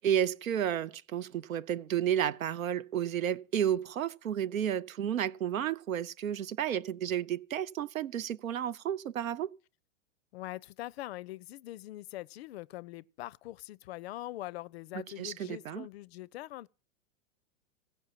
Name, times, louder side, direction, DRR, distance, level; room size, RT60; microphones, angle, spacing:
voice 1, 0.0-9.5 14.9-15.9, right 10 dB, 80° right, 0.7 m, -32 dB
voice 2, 10.3-16.7, left 16 dB, 50° left, 0.5 m, -43 dB
16.0 x 5.5 x 7.4 m
hypercardioid pair, 105°, 40 cm